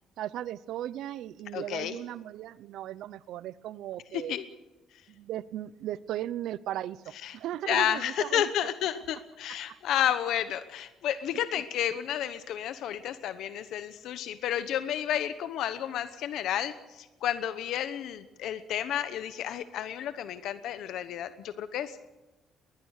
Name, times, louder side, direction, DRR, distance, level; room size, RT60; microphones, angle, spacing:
voice 1, 0.2-4.4 5.1-8.7 9.7-9.8, right 12 dB, 75° right, 19 dB, 0.7 m, -37 dB
voice 2, 1.5-2.0 4.3-4.4 7.2-7.4 7.7-22.0, left 10 dB, 70° left, 12 dB, 1.0 m, -31 dB
21.0 x 20.5 x 6.6 m, 1.1 s
cardioid pair, 150°, 0 cm